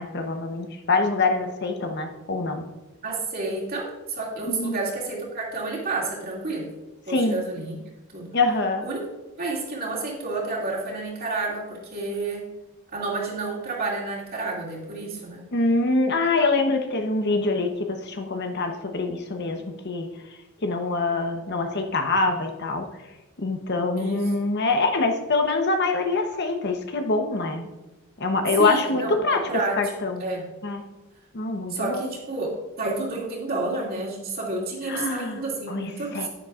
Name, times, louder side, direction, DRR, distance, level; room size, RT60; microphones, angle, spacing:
voice 1, 0.0-2.6 4.5-4.8 7.1-7.4 8.3-8.8 15.5-19.6 19.8-20.1 20.6-22.8 23.4-27.7 28.2-29.4 29.8-30.2 30.6-30.8 31.3-32.1 34.9-36.3, left 3 dB, 55° left, 5 dB, 1.0 m, -24 dB
voice 2, 3.0-6.7 7.1-7.8 8.1-8.3 8.8-9.0 9.4-12.5 12.9-15.4 24.0-24.3 28.6-29.8 30.2-30.4 31.7-36.3, right 3 dB, 45° right, -4 dB, 2.5 m, -30 dB
10.0 x 9.7 x 2.5 m, 1.0 s
head